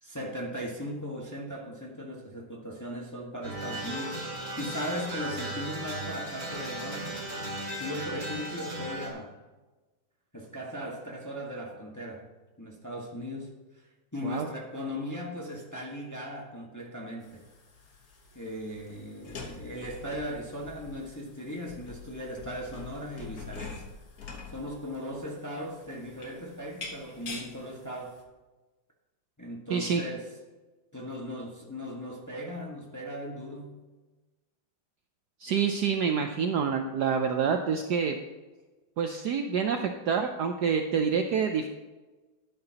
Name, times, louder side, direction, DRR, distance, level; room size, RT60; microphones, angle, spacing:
voice 1, 0.0-7.2 7.8-9.3 10.3-12.2 12.6-17.4 18.3-23.8 24.5-28.2 29.4-30.3 30.9-33.8, equal, 10° left, -2 dB, 1.1 m, -38 dB
sound 1, 3.4-9.1, right 1 dB, 45° right, 2.8 m, -36 dB
sound 2, 17.2-28.2, left 4 dB, 50° left, 1.5 m, -46 dB
voice 2, 29.7-30.0 35.4-38.2 39.0-39.8 40.1-41.7, right 6 dB, 70° right, 5 dB, 1.0 m, -27 dB
12.5 x 9.7 x 2.9 m, 1.2 s
omnidirectional pair, 2.3 m